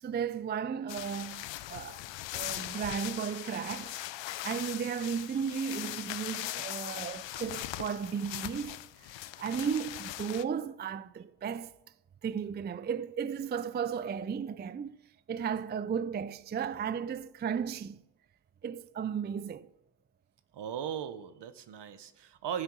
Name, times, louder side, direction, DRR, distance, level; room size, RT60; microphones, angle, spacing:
voice 1, 0.0-2.0 2.3-4.0 4.4-8.8 9.4-11.7 12.2-15.0 15.3-18.0 18.6-19.7, right 7 dB, 25° right, 0.4 m, -34 dB
sound 1, 0.9-10.4, left 15 dB, 90° left, 0.6 m, -40 dB
voice 2, 20.5-22.6, right 9 dB, 70° right, 1.0 m, -38 dB
10.5 x 7.9 x 6.2 m
cardioid pair, 70°, 43 cm